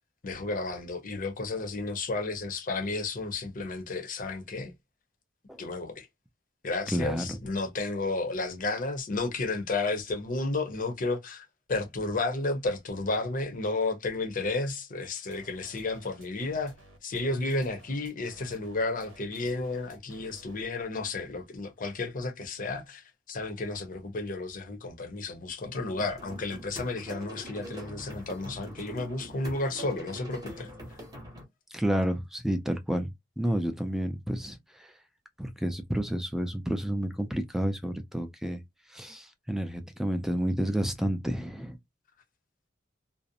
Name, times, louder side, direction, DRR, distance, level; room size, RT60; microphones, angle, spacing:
voice 1, 0.2-4.7 5.6-6.1 6.6-16.7 17.0-30.7, left 3 dB, 45° left, 0.6 m, -32 dB
voice 2, 6.9-7.4 31.7-33.1 33.4-34.9 35.4-38.6 38.9-41.8, equal, ahead, 0.4 m, -30 dB
sound 1, 15.3-20.8, right 2 dB, 85° right, 1.0 m, -54 dB
sound 2, 26.0-31.4, equal, 20° right, 0.8 m, -43 dB
2.5 x 2.0 x 2.7 m
head